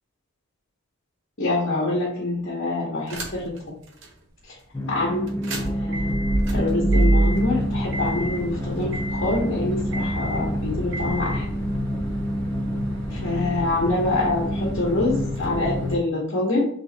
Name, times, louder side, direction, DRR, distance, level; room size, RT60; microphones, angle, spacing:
voice 1, 1.4-3.4 4.9-5.2 5.5-6.1 6.5-11.5 13.1-16.6, left 2 dB, 55° left, -4 dB, 1.3 m, -25 dB
sound 1, 3.1-3.6 4.0-4.1 5.3-15.9, right 1 dB, 55° right, 0.8 m, -28 dB
sound 2, 4.7-16.0, equal, 10° left, 0.3 m, -29 dB
3.4 x 3.2 x 4.0 m, 0.63 s
head